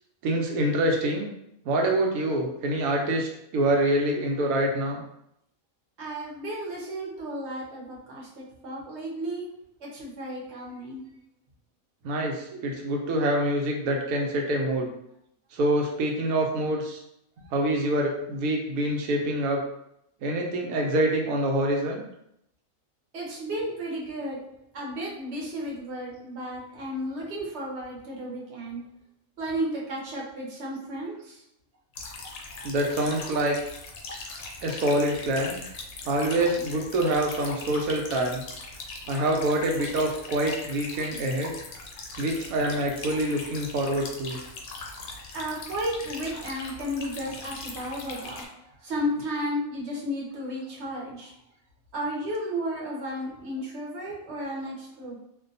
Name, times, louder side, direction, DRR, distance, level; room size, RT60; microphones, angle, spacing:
voice 1, 0.2-1.3 1.6-5.0 12.0-14.9 15.5-17.0 17.5-19.6 20.2-22.0 32.6-33.6 34.6-35.6 36.0-38.4 39.1-41.6 42.2-44.4, right 1 dB, 85° right, 1 dB, 1.1 m, -26 dB
voice 2, 6.0-9.5 9.8-11.0 17.4-17.5 23.1-24.4 24.7-28.8 29.4-31.4 45.3-51.3 51.9-55.2, equal, 55° right, -3 dB, 1.0 m, -33 dB
sound 1, 31.9-48.5, left 3 dB, 75° left, 1.0 m, -40 dB
2.6 x 2.2 x 2.6 m, 0.76 s
omnidirectional pair, 1.5 m